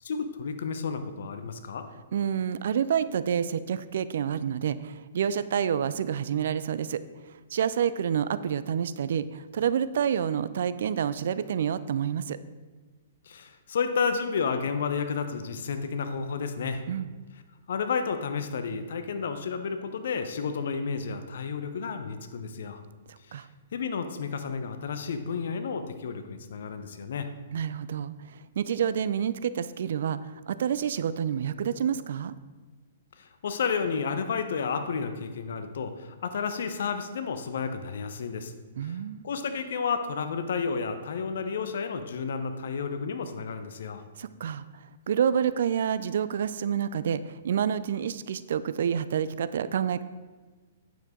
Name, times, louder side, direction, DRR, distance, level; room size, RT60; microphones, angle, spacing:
voice 1, 0.0-1.9 13.3-16.8 17.7-22.8 23.3-23.4 23.7-27.3 33.2-38.5 38.8-39.0 39.2-44.0, left 5 dB, 65° left, 9 dB, 0.8 m, -31 dB
voice 2, 2.1-7.0 7.5-12.4 16.9-17.1 23.3-23.5 27.5-32.3 38.8-39.2 44.2-44.6 45.1-50.0, right 8 dB, 65° right, 15 dB, 0.4 m, -28 dB
9.1 x 7.2 x 3.7 m, 1.4 s
hypercardioid pair, 120°, 0 cm